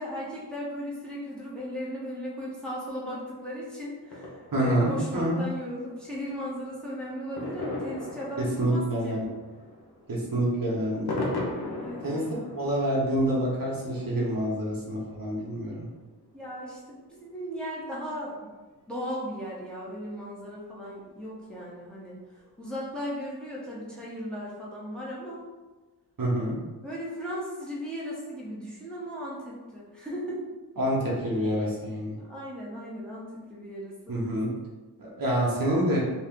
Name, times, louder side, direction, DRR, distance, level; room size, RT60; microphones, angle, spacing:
voice 1, 0.0-9.2 11.8-12.0 16.3-18.5 18.9-22.2 22.6-25.4 26.8-30.4 32.2-34.2, equal, ahead, -7 dB, 1.0 m, -36 dB
sound 1, 4.0-16.7 17.2-17.3 17.5-17.6 17.8-17.9 18.2-18.3 19.2-19.3 19.8-19.9 21.2-21.6 21.8-21.9 22.3-22.4 22.8-22.9, left 2 dB, 70° left, 0.8 m, -39 dB
voice 2, 4.5-5.4 8.4-9.2 10.1-11.2 12.0-12.2 12.5-15.9 26.2-26.5 30.8-32.2 34.1-34.5 35.0-36.0, right 1 dB, 55° right, -4 dB, 0.9 m, -27 dB
2.6 x 2.4 x 3.6 m, 1.2 s
cardioid pair, 55°, 39 cm